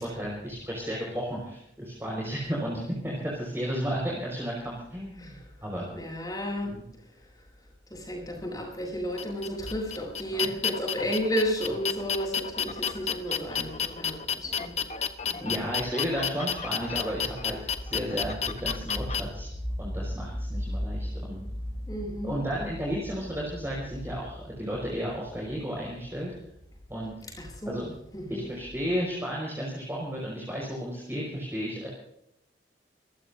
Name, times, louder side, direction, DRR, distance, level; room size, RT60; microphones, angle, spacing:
voice 1, 0.0-5.4 5.6-5.9 6.6-6.8 10.3-10.5 15.4-19.5 19.8-21.4 22.2-26.3 26.9-27.3 27.6-27.8 28.3-31.9, equal, 15° right, -4 dB, 5.0 m, -33 dB
voice 2, 5.9-6.8 7.9-14.7 15.3-15.6 21.9-22.3 27.4-28.4, equal, 20° left, -1 dB, 7.7 m, -32 dB
sound 1, 9.2-19.2, left 7 dB, 35° left, 1.1 m, -31 dB
27.0 x 15.0 x 2.7 m, 0.75 s
head